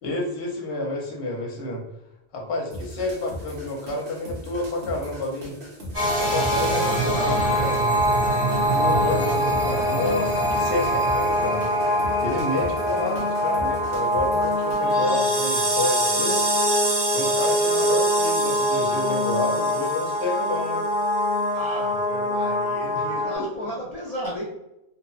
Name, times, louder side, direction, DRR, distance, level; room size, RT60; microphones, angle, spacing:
voice 1, 0.0-1.8 2.3-5.6 6.2-7.4 8.7-11.6 12.2-16.4 17.1-20.8 23.0-23.2, left 2 dB, 80° left, 0 dB, 0.9 m, -29 dB
sound 1, 2.7-15.1, equal, 55° right, 0.9 m, -39 dB
sound 2, 5.9-23.4, equal, 25° right, 0.9 m, -23 dB
voice 2, 6.3-7.9 21.5-24.5, equal, 50° left, -6 dB, 0.5 m, -34 dB
2.8 x 2.0 x 2.4 m, 0.88 s
omnidirectional pair, 1.1 m